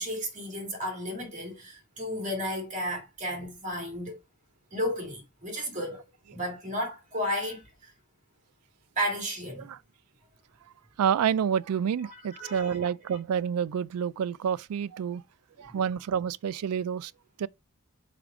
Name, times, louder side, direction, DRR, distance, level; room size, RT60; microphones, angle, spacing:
voice 1, 0.0-4.2 4.7-6.0 6.3-7.9 9.0-9.7 12.1-12.9 15.7-15.8, equal, 35° right, 2.2 m, -33 dB
voice 2, 11.0-15.2 15.6-17.1 17.4-17.5, right 8 dB, 90° right, 0.3 m, -28 dB
5.0 x 5.0 x 4.8 m
head